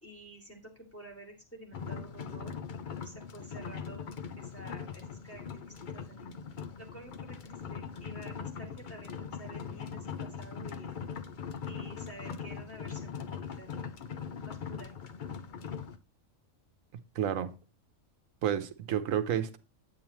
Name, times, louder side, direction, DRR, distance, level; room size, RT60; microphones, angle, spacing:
voice 1, 0.0-2.6 3.0-4.1 4.4-6.3 6.8-10.9 11.7-13.7 14.4-14.9, right 1 dB, 10° left, 2.7 m, -50 dB
sound 1, 1.7-16.0, left 6 dB, 50° left, 0.7 m, -41 dB
voice 2, 17.1-17.5 18.4-19.6, right 9 dB, 80° right, 1.2 m, -30 dB
9.4 x 8.7 x 3.1 m
omnidirectional pair, 1.4 m